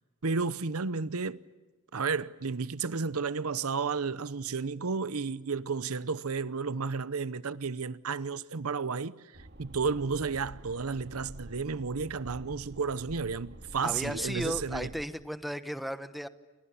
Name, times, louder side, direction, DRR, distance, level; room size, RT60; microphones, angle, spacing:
voice 1, 0.2-1.4 1.9-14.9, right 5 dB, 75° right, 0.8 m, -32 dB
sound 1, 9.3-15.1, right 1 dB, 50° right, 2.4 m, -48 dB
voice 2, 13.8-16.3, equal, ahead, 1.0 m, -35 dB
29.5 x 27.5 x 7.0 m
head